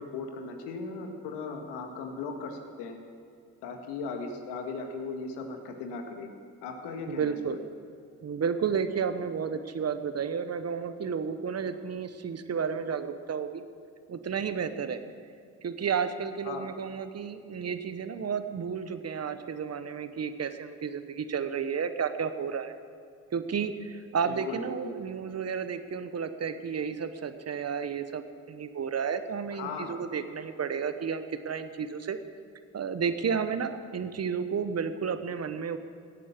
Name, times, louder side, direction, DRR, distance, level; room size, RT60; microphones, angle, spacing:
voice 1, 0.0-3.0 3.6-6.3 6.6-7.6 16.4-16.7 24.2-25.0 29.5-30.0, left 4 dB, 75° left, 4 dB, 1.9 m, -38 dB
voice 2, 7.1-7.6 8.2-13.6 14.1-15.0 15.6-22.7 23.3-32.2 32.7-35.8, right 6 dB, 40° right, 10 dB, 1.2 m, -32 dB
16.5 x 8.4 x 7.3 m, 2.4 s
hypercardioid pair, 55°, 41 cm